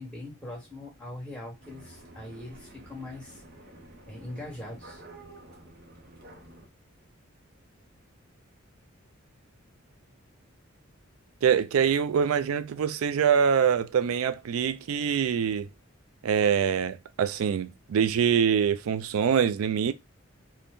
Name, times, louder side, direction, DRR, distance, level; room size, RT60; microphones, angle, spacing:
voice 1, 0.0-3.4 4.1-5.0, left 1 dB, 5° left, 1.2 m, -41 dB
sound 1, 1.6-6.7, right 1 dB, 45° right, 0.6 m, -50 dB
voice 2, 11.4-15.7 16.2-19.9, right 7 dB, 90° right, 0.3 m, -24 dB
2.6 x 2.1 x 3.4 m
head